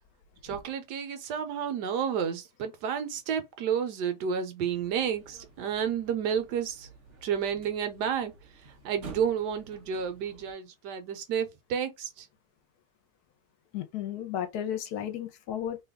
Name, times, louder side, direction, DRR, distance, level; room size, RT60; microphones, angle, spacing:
voice 1, 0.4-6.9 7.2-8.3 8.6-12.3, right 8 dB, 90° right, 1.3 m, -31 dB
sound 1, 4.7-10.5, right 4 dB, 55° right, 1.0 m, -50 dB
voice 2, 13.7-15.8, left 10 dB, 75° left, 1.2 m, -33 dB
3.1 x 2.2 x 3.5 m
omnidirectional pair, 1.7 m